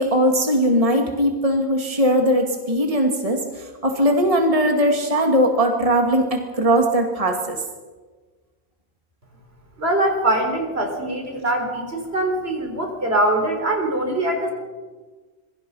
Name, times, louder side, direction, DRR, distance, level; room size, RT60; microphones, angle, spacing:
voice 1, 0.0-7.6, equal, 30° right, 3 dB, 2.4 m, -19 dB
voice 2, 9.8-14.5, right 1 dB, 70° right, 4 dB, 4.5 m, -22 dB
27.0 x 23.5 x 5.6 m, 1.4 s
omnidirectional pair, 1.1 m